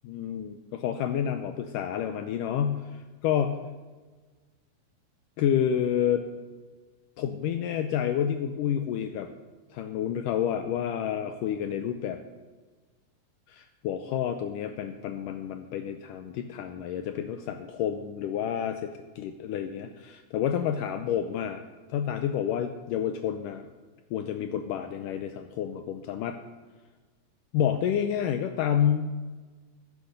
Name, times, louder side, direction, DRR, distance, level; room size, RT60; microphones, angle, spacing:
voice 1, 0.0-3.6 5.4-6.2 7.2-9.3 9.7-12.2 13.5-21.6 21.9-23.7 24.1-26.4 27.5-29.1, left 9 dB, 80° left, 8 dB, 1.9 m, -29 dB
11.5 x 10.5 x 6.7 m, 1.3 s
omnidirectional pair, 4.4 m